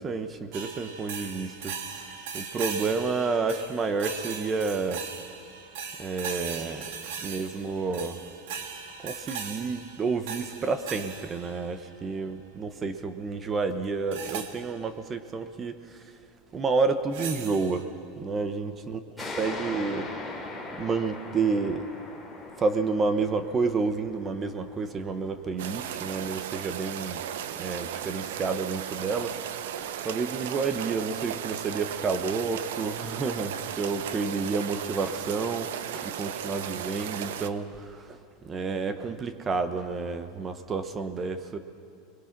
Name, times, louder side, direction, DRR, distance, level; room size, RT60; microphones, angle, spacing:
voice 1, 0.0-1.8 2.0-5.1 6.0-6.9 7.2-8.2 9.0-16.1 16.5-17.9 18.2-19.0 19.4-20.1 20.8-21.9 22.6-27.2 27.6-29.4 29.8-41.6, right 4 dB, 20° right, 10 dB, 1.0 m, -30 dB
sound 1, 0.5-12.0 14.1-14.6 17.1-17.8, right 6 dB, 70° right, 1.7 m, -39 dB
sound 2, 19.2-26.3, left 2 dB, ahead, 3.0 m, -40 dB
sound 3, 25.6-37.5, right 9 dB, 90° right, 0.9 m, -35 dB
29.5 x 21.5 x 6.0 m, 2.4 s
supercardioid pair, 165°, 0 cm